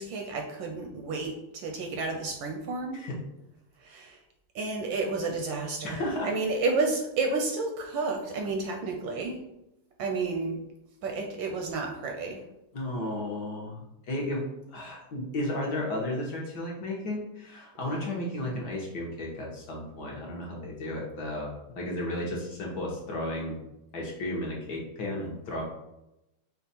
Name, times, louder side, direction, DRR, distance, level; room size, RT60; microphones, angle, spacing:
voice 1, 0.0-3.0 3.8-4.2 4.5-9.4 10.0-10.6 11.0-12.4, right 3 dB, 75° right, 2 dB, 1.2 m, -31 dB
voice 2, 5.8-6.3 12.7-23.6 23.9-25.6, left 1 dB, 60° left, -2 dB, 1.4 m, -33 dB
5.3 x 2.4 x 4.0 m, 0.90 s
omnidirectional pair, 2.3 m